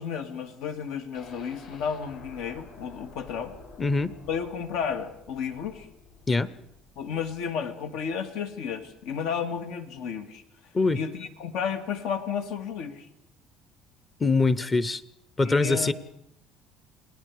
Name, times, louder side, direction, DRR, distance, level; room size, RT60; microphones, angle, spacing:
voice 1, 0.0-3.5 4.3-5.9 7.0-10.4 10.9-13.1 15.4-15.9, left 7 dB, 80° left, 7 dB, 2.1 m, -32 dB
sound 1, 1.1-9.0 9.4-9.5 9.8-9.9, left 4 dB, 60° left, 7.0 m, -50 dB
voice 2, 3.8-4.1 6.3-6.5 10.7-11.0 14.2-15.0 15.4-15.9, left 3 dB, 15° left, 17 dB, 0.7 m, -23 dB
28.0 x 19.0 x 4.9 m, 0.75 s
cardioid pair, 155°, 0 cm